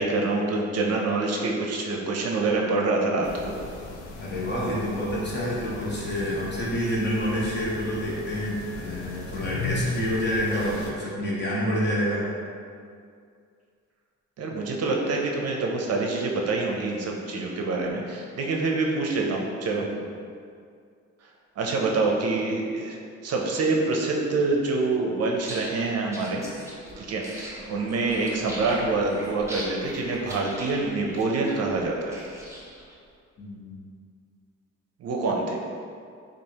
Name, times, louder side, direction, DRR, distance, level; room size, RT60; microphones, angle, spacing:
voice 1, 0.0-3.5 14.4-19.8 21.6-23.0 23.2-26.4 27.0-32.2 35.0-35.6, right 3 dB, 55° right, 0 dB, 0.6 m, -26 dB
sound 1, 3.2-10.9, left 2 dB, 75° left, 0.6 m, -36 dB
voice 2, 4.2-12.2 19.8-19.9 33.4-33.8, equal, 35° left, -6 dB, 1.1 m, -28 dB
sound 2, 25.3-32.9, equal, 10° right, 0.7 m, -41 dB
4.6 x 2.5 x 2.8 m, 2.3 s
cardioid pair, 90°, 30 cm